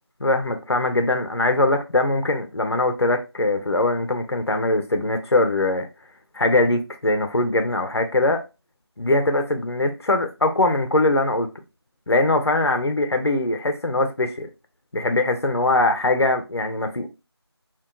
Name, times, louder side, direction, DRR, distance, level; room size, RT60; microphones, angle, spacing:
voice 1, 0.2-5.9 6.3-8.4 9.0-11.5 12.1-14.5 14.9-17.1, left 2 dB, 70° left, 0.6 m, -21 dB
2.7 x 2.2 x 2.2 m
figure-of-eight pair, 175°, 14 cm